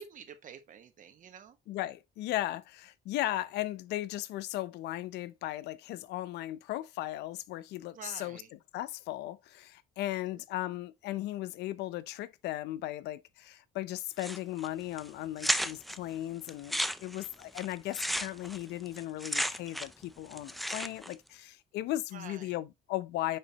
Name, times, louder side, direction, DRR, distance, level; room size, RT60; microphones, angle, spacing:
voice 1, 0.0-1.6 7.9-8.5 10.0-10.4 22.1-22.6, right 7 dB, 50° right, 1.2 m, -49 dB
voice 2, 1.7-8.4 8.7-23.4, left 15 dB, 80° left, 0.6 m, -37 dB
sound 1, 14.2-14.7 15.0-15.1 15.4-16.0 16.5-20.0 20.3-21.1, equal, ahead, 0.4 m, -33 dB
9.5 x 3.8 x 2.9 m
cardioid pair, 110°, 17 cm